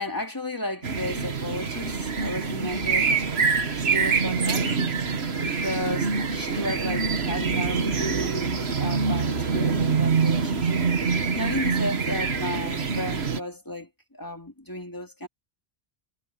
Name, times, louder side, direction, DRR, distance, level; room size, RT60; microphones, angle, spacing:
voice 1, 0.0-3.1 3.8-4.7 5.3-10.8 11.3-15.3, left 1 dB, 20° left, 2.5 m, -34 dB
sound 1, 0.8-13.4, right 5 dB, 80° right, 1.7 m, -25 dB
omnidirectional pair, 1.1 m